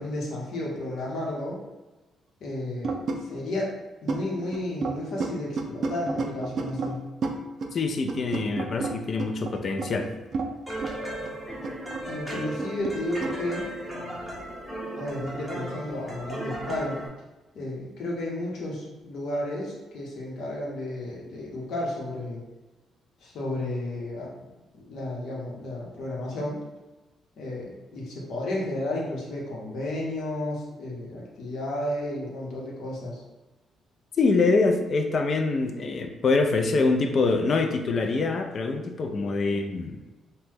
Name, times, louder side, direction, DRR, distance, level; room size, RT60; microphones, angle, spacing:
voice 1, 0.0-1.6 2.4-3.7 4.0-7.0 12.1-13.7 15.0-17.0 17.5-22.4 23.2-24.4 24.7-26.6 27.4-33.2, left 1 dB, 75° left, -3 dB, 0.9 m, -32 dB
sound 1, 2.8-3.2 3.5-3.6 4.1-4.2 4.5-6.9 7.2-7.7 8.1-10.5 10.8-10.9 11.2-13.0 13.2-13.4, right 4 dB, 55° right, 0.4 m, -31 dB
voice 2, 7.7-10.1 34.2-40.0, left 3 dB, 50° left, 5 dB, 0.4 m, -25 dB
sound 2, 10.7-17.1, right 1 dB, 5° left, 0.8 m, -36 dB
2.9 x 2.1 x 3.4 m, 1.1 s
cardioid pair, 90°, 0 cm